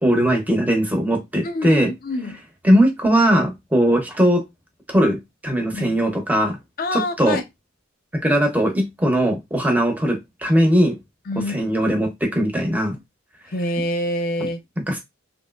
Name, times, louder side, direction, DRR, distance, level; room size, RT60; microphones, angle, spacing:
voice 1, 0.0-1.9 2.6-4.4 4.9-5.2 5.4-6.6 6.9-7.4 8.1-11.0 11.4-13.0 13.8-13.9 14.4-14.5 14.8-15.0, equal, 10° right, 0.6 m, -19 dB
voice 2, 1.4-2.4 5.7-6.0 6.8-7.4 11.3-11.7 13.5-14.6, left 1 dB, 45° left, 0.5 m, -26 dB
2.9 x 2.8 x 2.2 m
head